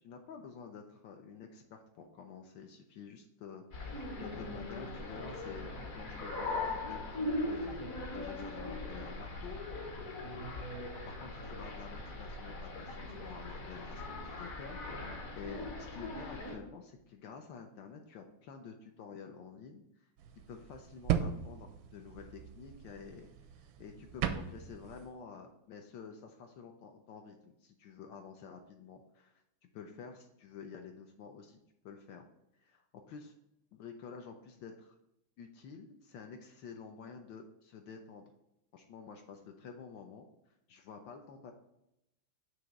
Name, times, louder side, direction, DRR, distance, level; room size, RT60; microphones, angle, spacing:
voice 1, 0.0-9.6 10.5-10.8 11.0-14.8 15.3-20.1 20.5-23.3 23.8-29.4 29.7-31.6 31.8-32.2 32.5-33.3 33.7-35.0 35.4-38.3 38.7-41.5, left 6 dB, 75° left, 3 dB, 1.3 m, -50 dB
sound 1, 3.7-16.6, left 2 dB, 50° left, 1.2 m, -40 dB
sound 2, 20.2-25.1, right 9 dB, 85° right, 1.4 m, -38 dB
6.3 x 3.0 x 5.8 m, 0.85 s
omnidirectional pair, 2.1 m